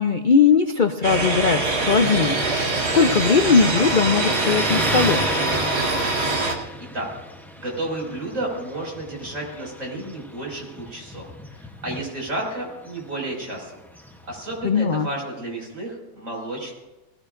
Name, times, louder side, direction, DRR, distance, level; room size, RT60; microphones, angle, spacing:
voice 1, 0.0-5.3 14.6-15.1, left 5 dB, 55° left, 7 dB, 0.5 m, -19 dB
sound 1, 1.0-6.5, right 3 dB, 80° right, 2.6 m, -23 dB
Motorcycle, 2.2-14.8, left 1 dB, ahead, 0.6 m, -34 dB
voice 2, 7.6-11.2 11.5-13.7 14.3-16.7, right 1 dB, 55° right, -2 dB, 6.1 m, -31 dB
21.0 x 20.0 x 2.6 m, 1.0 s
omnidirectional pair, 1.7 m